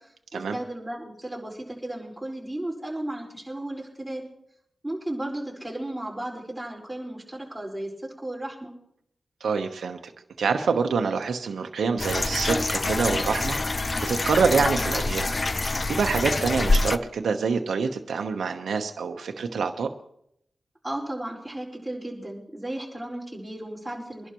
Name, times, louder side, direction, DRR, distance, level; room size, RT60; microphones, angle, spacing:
voice 1, 0.0-4.2 4.8-8.7 20.8-24.3, right 1 dB, 10° right, -2 dB, 4.7 m, -35 dB
voice 2, 9.4-10.1 10.4-13.6 14.0-15.3 15.9-19.9, right 5 dB, 90° right, 4 dB, 1.0 m, -26 dB
sound 1, 12.0-17.0, left 2 dB, 35° left, 0.6 m, -26 dB
24.0 x 11.5 x 3.1 m, 0.72 s
cardioid pair, 70°, 0 cm